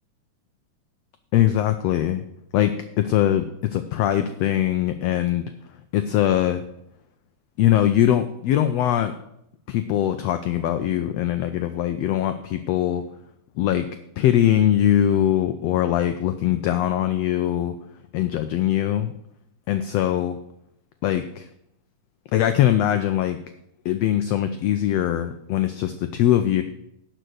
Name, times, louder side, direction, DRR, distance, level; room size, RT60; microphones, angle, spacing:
voice 1, 1.3-2.2 2.5-3.4 3.7-5.4 5.9-6.6 7.6-9.1 9.7-13.0 13.6-13.9 14.2-17.7 18.1-19.1 19.7-20.4 21.0-21.5 22.3-23.4 23.8-26.6, left 11 dB, 90° left, 9 dB, 1.4 m, -21 dB
11.0 x 5.2 x 7.8 m, 0.77 s
omnidirectional pair, 3.6 m